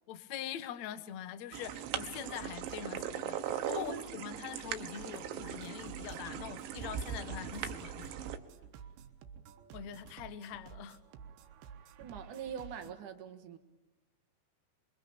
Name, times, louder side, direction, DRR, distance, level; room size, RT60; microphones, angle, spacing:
voice 1, 0.1-8.2 9.7-11.0, left 10 dB, 80° left, 12 dB, 1.6 m, -43 dB
sound 1, 1.5-8.4, right 9 dB, 90° right, 3.8 m, -40 dB
voice 2, 3.7-4.1 12.0-13.6, right 8 dB, 55° right, 7 dB, 2.7 m, -43 dB
sound 2, 5.0-12.9, right 7 dB, 70° right, 3.5 m, -52 dB
27.5 x 24.0 x 8.7 m, 1.1 s
omnidirectional pair, 5.3 m